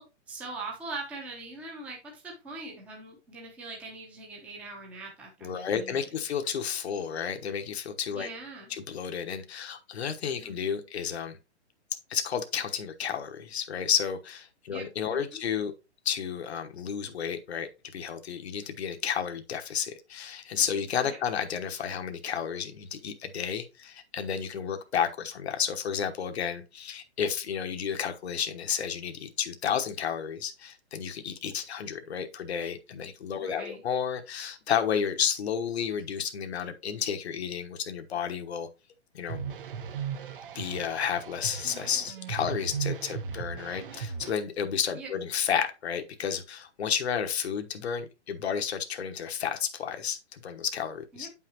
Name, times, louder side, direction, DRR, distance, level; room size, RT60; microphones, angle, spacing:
voice 1, 0.0-6.2 8.1-8.8 10.4-10.8 14.7-15.4 21.1-21.2 33.4-33.8 45.0-45.1 51.1-51.3, right 3 dB, 5° right, 0.8 m, -42 dB
voice 2, 5.4-8.3 8.7-11.4 12.1-15.7 16.0-38.7 39.1-39.4 40.5-51.3, left 7 dB, 65° left, 1.2 m, -31 dB
sound 1, 39.3-44.3, right 6 dB, 50° right, 0.8 m, -37 dB
8.9 x 5.7 x 2.9 m
hypercardioid pair, 175°, 36 cm